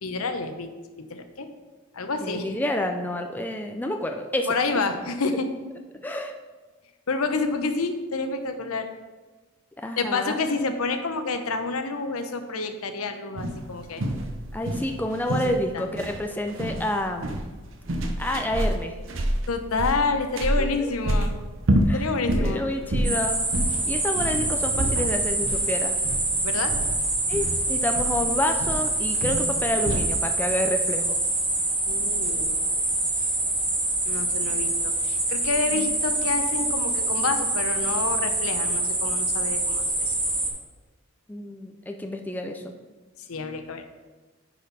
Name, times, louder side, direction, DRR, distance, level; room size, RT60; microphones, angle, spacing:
voice 1, 0.0-1.5 1.9-2.6 4.5-5.5 7.1-8.9 10.0-14.0 15.7-15.8 19.5-21.4 21.9-22.6 26.4-26.7 31.9-32.6 34.0-40.1 43.3-43.8, left 3 dB, 80° left, 8 dB, 0.7 m, -28 dB
voice 2, 2.2-4.6 6.0-6.3 9.8-10.4 14.5-17.4 18.2-18.9 20.6-20.9 21.9-22.1 22.4-23.4 23.9-25.9 27.3-31.2 35.7-36.0 41.3-42.7, left 1 dB, 10° left, 4 dB, 0.4 m, -29 dB
sound 1, 13.4-30.2, right 1 dB, 60° right, 0.7 m, -28 dB
sound 2, 23.0-40.5, right 2 dB, 20° right, 1.4 m, -25 dB
10.0 x 4.3 x 4.1 m, 1.3 s
head